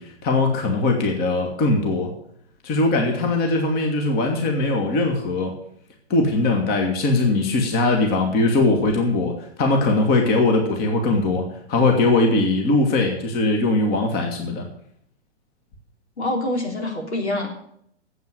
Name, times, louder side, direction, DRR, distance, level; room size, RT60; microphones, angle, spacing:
voice 1, 0.0-2.1 2.6-5.5 6.1-14.7, left 2 dB, 25° left, 3 dB, 2.0 m, -20 dB
voice 2, 16.2-17.5, left 1 dB, 75° left, 2 dB, 3.5 m, -25 dB
9.2 x 8.1 x 9.4 m, 0.69 s
figure-of-eight pair, 120°, 34 cm